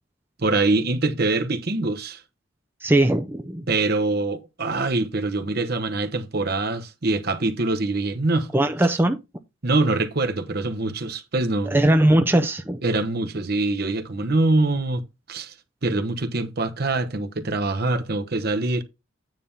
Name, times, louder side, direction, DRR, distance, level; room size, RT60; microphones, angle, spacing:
voice 1, 0.4-2.2 3.7-8.5 9.6-11.9 12.8-15.0 15.3-15.5 15.8-18.8, right 2 dB, 50° right, 1.0 m, -24 dB
voice 2, 2.8-3.6 8.5-9.2 11.6-12.8, right 1 dB, 10° right, 0.5 m, -19 dB
9.3 x 3.5 x 5.6 m
head